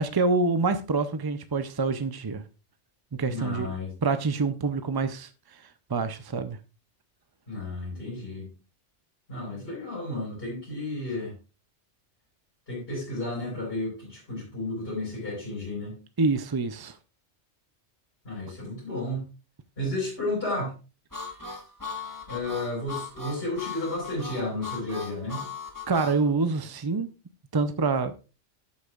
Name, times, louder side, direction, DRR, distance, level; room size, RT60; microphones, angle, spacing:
voice 1, 0.0-2.4 3.1-3.7 4.0-5.6 5.9-6.6 16.2-17.0 25.9-27.1 27.5-28.1, right 4 dB, 35° right, 0.3 m, -26 dB
voice 2, 3.3-4.0 7.5-8.5 9.3-11.3 12.7-15.9 18.2-19.3 19.8-20.7 22.3-25.5, left 2 dB, 55° left, 5.8 m, -32 dB
Harmonica, 21.1-26.2, left 4 dB, 15° left, 1.4 m, -38 dB
12.0 x 8.2 x 2.4 m
omnidirectional pair, 1.2 m